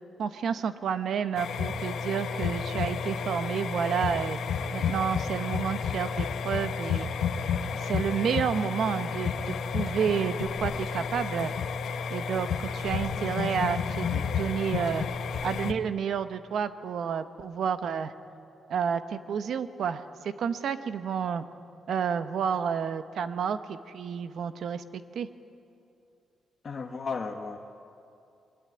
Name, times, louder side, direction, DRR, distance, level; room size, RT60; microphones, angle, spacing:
voice 1, 0.2-4.4 4.7-7.1 7.7-11.5 12.1-15.1 15.4-18.1 18.7-21.4 21.9-24.8 25.1-25.3, right 7 dB, 65° right, 11 dB, 1.0 m, -30 dB
sound 1, 1.4-15.7, left 6 dB, 70° left, 1.1 m, -31 dB
voice 2, 26.6-27.6, left 5 dB, 35° left, 2 dB, 1.2 m, -34 dB
23.5 x 20.5 x 9.6 m, 2.6 s
cardioid pair, 145°, 0 cm